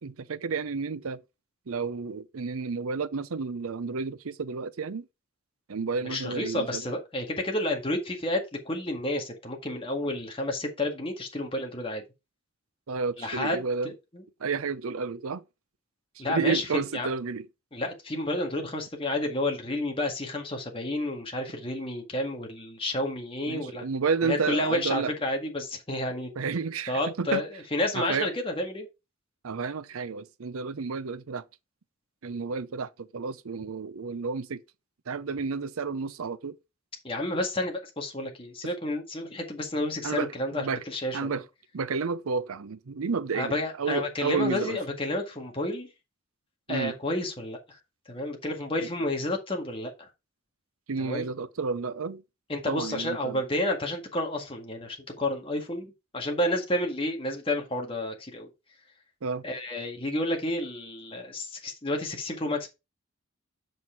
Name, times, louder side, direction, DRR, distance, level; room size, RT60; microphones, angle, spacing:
voice 1, 0.0-1.2 1.7-5.1 5.7-6.8 12.9-13.9 14.4-15.4 16.2-17.5 23.5-25.1 26.4-27.4 27.9-28.3 29.4-31.4 32.2-34.6 35.1-36.6 40.0-40.8 41.1-41.4 41.7-44.8 46.7-46.9 50.9-52.2 52.7-53.4 59.2-59.4, right 5 dB, 80° right, 0.6 m, -31 dB
voice 2, 6.0-12.0 13.2-13.6 13.8-14.2 16.2-16.7 16.9-17.1 17.7-23.9 24.2-26.3 26.9-28.9 37.0-41.3 43.3-45.9 46.7-47.6 48.1-50.1 51.0-51.3 52.5-58.5 59.4-62.7, left 1 dB, 25° left, 1.8 m, -30 dB
7.7 x 5.6 x 4.4 m
head